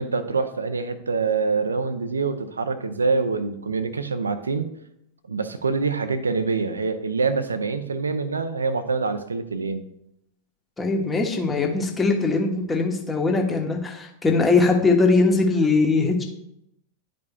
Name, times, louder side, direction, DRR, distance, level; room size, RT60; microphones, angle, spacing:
voice 1, 0.0-4.7 5.3-9.9, right 4 dB, 75° right, 11 dB, 0.6 m, -25 dB
voice 2, 10.8-16.2, left 3 dB, 15° left, 1 dB, 1.2 m, -21 dB
11.5 x 5.1 x 2.4 m, 0.79 s
figure-of-eight pair, 90°, 0 cm